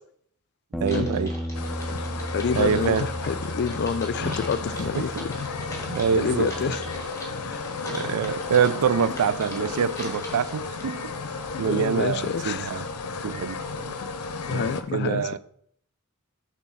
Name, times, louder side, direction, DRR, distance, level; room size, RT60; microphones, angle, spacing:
Bass guitar, 0.7-7.0, right 1 dB, ahead, 0.6 m, -35 dB
Typing, 0.8-11.3, equal, 15° left, 1.5 m, -42 dB
voice 1, 0.8-1.3 2.5-3.1 4.2-4.3 5.0-5.2 5.9-6.8 7.9-11.1 11.6-12.8 13.2-15.4, right 7 dB, 80° right, 0.4 m, -26 dB
sound 1, 1.5-14.8, left 4 dB, 85° left, 0.6 m, -33 dB
voice 2, 2.3-5.5 6.1-6.8 7.4-7.6 11.6-12.7 13.1-13.2 14.0-14.1 14.5-15.2, left 6 dB, 50° left, 0.4 m, -28 dB
6.1 x 4.0 x 5.7 m
head